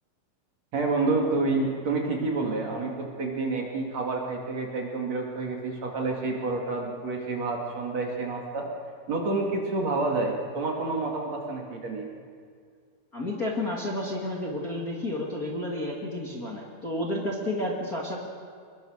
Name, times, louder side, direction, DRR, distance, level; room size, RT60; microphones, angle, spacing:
voice 1, 0.7-8.6 9.1-12.1, right 3 dB, 50° right, 0 dB, 3.4 m, -28 dB
voice 2, 13.1-18.2, left 1 dB, 25° left, -2 dB, 2.3 m, -31 dB
26.5 x 22.0 x 6.5 m, 2.1 s
omnidirectional pair, 4.4 m